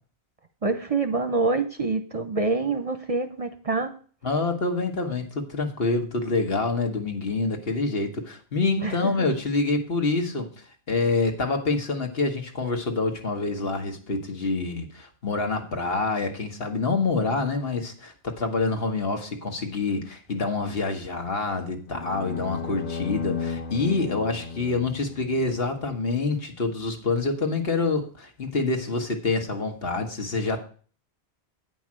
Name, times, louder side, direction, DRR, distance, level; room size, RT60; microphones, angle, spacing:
voice 1, 0.6-3.9 8.8-9.3, right 3 dB, 40° right, 9 dB, 0.7 m, -26 dB
voice 2, 4.2-10.5 10.9-30.6, left 3 dB, 65° left, 4 dB, 1.8 m, -26 dB
sound 1, 21.9-26.1, left 5 dB, 80° left, 1.7 m, -34 dB
9.3 x 5.3 x 7.5 m, 0.42 s
omnidirectional pair, 1.1 m